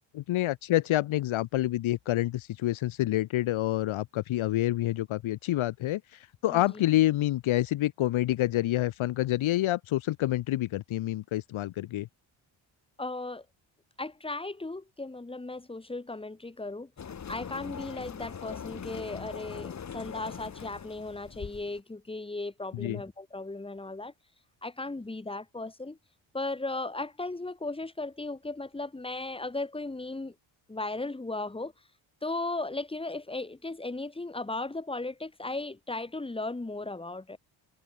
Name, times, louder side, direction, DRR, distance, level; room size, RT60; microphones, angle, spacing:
voice 1, 0.1-12.1 22.7-23.0, left 15 dB, 85° left, 1.7 m, -28 dB
voice 2, 6.5-6.8 13.0-13.5 14.0-16.9 17.3-24.1 24.6-26.0 26.3-30.3 30.7-31.7 32.2-37.4, left 2 dB, 10° left, 7.4 m, -36 dB
sound 1, 17.0-21.8, left 7 dB, 35° left, 5.1 m, -41 dB
cardioid pair, 175°, 47 cm